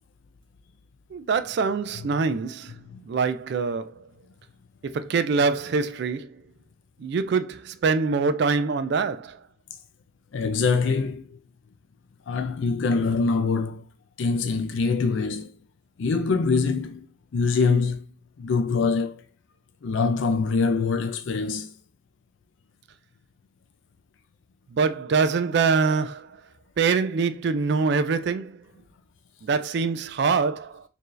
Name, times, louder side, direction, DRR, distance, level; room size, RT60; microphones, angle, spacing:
voice 1, 1.1-2.7 3.1-3.9 4.8-6.4 7.0-9.4 24.7-26.3 26.8-28.6 29.4-30.8, right 5 dB, 55° right, 0.3 m, -24 dB
voice 2, 10.3-11.4 12.3-13.8 14.2-15.5 16.0-17.1 17.3-18.0 18.4-19.2 19.8-21.7, left 4 dB, 70° left, 0.4 m, -24 dB
4.3 x 2.7 x 3.1 m
head